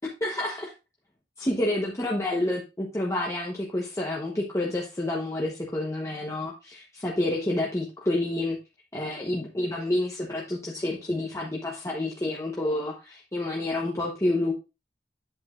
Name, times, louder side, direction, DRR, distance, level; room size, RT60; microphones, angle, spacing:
voice 1, 0.2-0.7 1.4-8.6 8.9-14.5, left 1 dB, 15° left, -2 dB, 1.0 m, -29 dB
8.0 x 7.9 x 2.5 m, 0.27 s
head